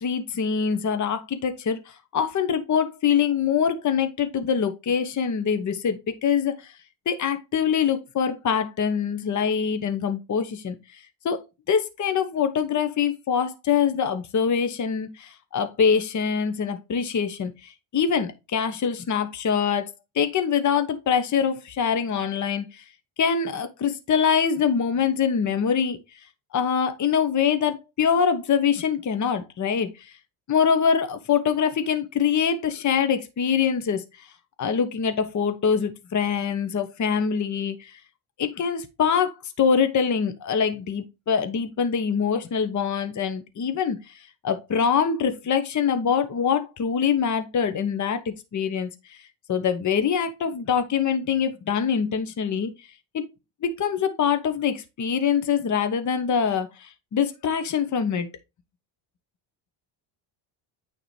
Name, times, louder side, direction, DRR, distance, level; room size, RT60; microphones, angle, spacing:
voice 1, 0.0-6.7 7.1-10.8 11.2-11.4 11.7-22.8 23.2-26.0 26.5-29.9 30.5-34.3 34.6-38.0 38.4-44.1 44.4-49.2 49.5-52.7 53.1-53.2 53.6-58.3, left 7 dB, 35° left, 1.1 m, -24 dB
9.0 x 3.9 x 3.3 m
cardioid pair, 105°, 48 cm